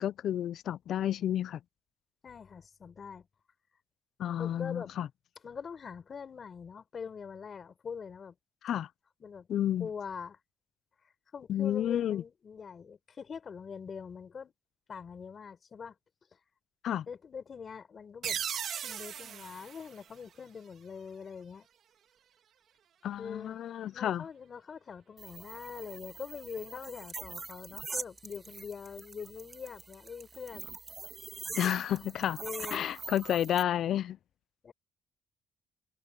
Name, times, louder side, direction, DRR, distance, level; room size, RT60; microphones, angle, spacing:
voice 1, 0.0-1.6 4.2-5.1 8.6-8.9 9.5-9.9 11.5-12.2 16.8-17.1 23.0-24.2 31.6-32.4 32.7-34.2, left 11 dB, 70° left, 0.5 m, -31 dB
voice 2, 2.2-3.3 4.4-4.9 5.4-8.3 9.2-9.5 9.8-10.4 11.3-14.5 14.9-16.0 17.1-18.4 18.7-21.7 23.2-23.6 23.8-30.7 32.4-32.9 34.6-34.7, left 6 dB, 45° left, 4.4 m, -43 dB
sound 1, 18.2-20.8, right 9 dB, 65° right, 1.8 m, -38 dB
sound 2, 25.2-33.6, right 3 dB, 30° right, 1.6 m, -44 dB
cardioid pair, 90°, 0 cm